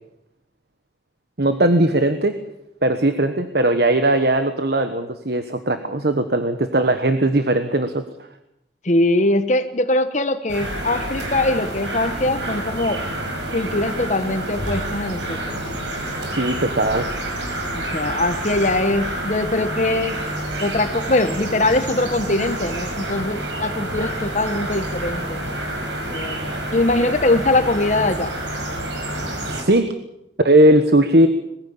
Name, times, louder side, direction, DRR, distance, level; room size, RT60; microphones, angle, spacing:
voice 1, 1.4-2.4 2.8-8.0 16.3-17.1 29.4-29.9 30.4-31.3, right 1 dB, 60° right, 8 dB, 1.3 m, -18 dB
voice 2, 8.8-13.0 13.5-15.6 17.7-20.2 20.6-25.4 26.1-28.3, left 2 dB, 40° left, 10 dB, 1.1 m, -22 dB
sound 1, 10.5-29.6, right 1 dB, 90° right, 5.7 m, -28 dB
22.0 x 15.5 x 8.8 m, 0.84 s
head